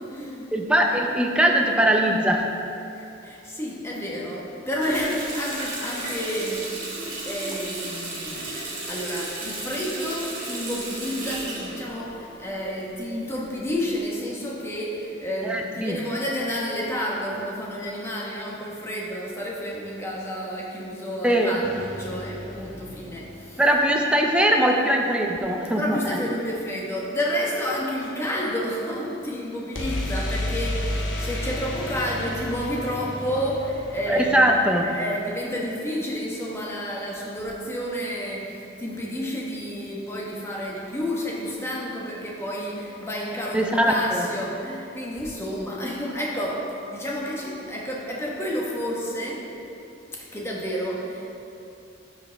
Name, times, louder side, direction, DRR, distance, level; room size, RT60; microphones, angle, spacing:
voice 1, 0.0-0.5 2.9-6.8 7.3-8.6 8.9-23.6 25.7-34.5 34.8-49.5 50.3-51.3, equal, 15° left, -4 dB, 1.2 m, -30 dB
voice 2, 0.5-2.5 15.4-16.0 21.2-21.5 23.6-26.0 34.1-34.8 43.5-44.3, right 1 dB, 5° right, 1 dB, 0.5 m, -21 dB
Water tap faucet, 4.8-12.6 12.9-13.9, right 2 dB, 40° right, 1.9 m, -34 dB
sound 1, 21.6-23.6 29.7-35.5, left 1 dB, 80° left, 1.2 m, -32 dB
13.0 x 5.1 x 3.4 m, 2.8 s
head